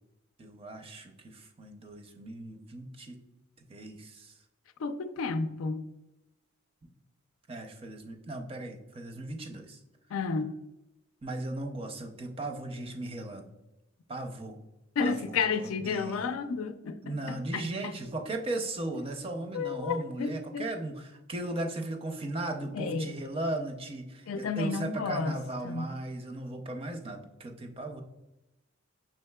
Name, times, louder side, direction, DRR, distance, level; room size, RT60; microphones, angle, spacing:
voice 1, 0.4-3.2 3.7-4.3 7.5-9.8 11.2-13.5 14.1-14.6 15.0-16.3 17.0-28.0, right 2 dB, 30° right, 0.5 m, -37 dB
voice 2, 4.8-5.8 10.1-10.6 15.0-17.0 17.3-17.9 19.5-20.7 22.7-23.1 24.3-25.3 25.6-25.9, left 5 dB, 85° left, 0.4 m, -31 dB
5.5 x 3.6 x 2.2 m
head